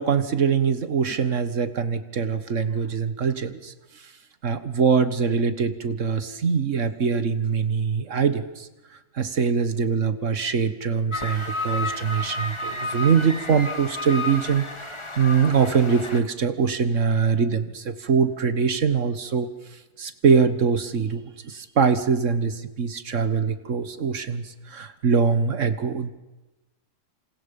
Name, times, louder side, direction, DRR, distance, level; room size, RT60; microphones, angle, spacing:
voice 1, 0.0-3.7 4.4-8.7 9.2-19.5 20.0-26.1, right 6 dB, 75° right, 11 dB, 1.8 m, -23 dB
sound 1, 11.1-16.2, left 2 dB, 25° left, 1.7 m, -31 dB
28.0 x 27.5 x 5.4 m, 1.1 s
omnidirectional pair, 1.3 m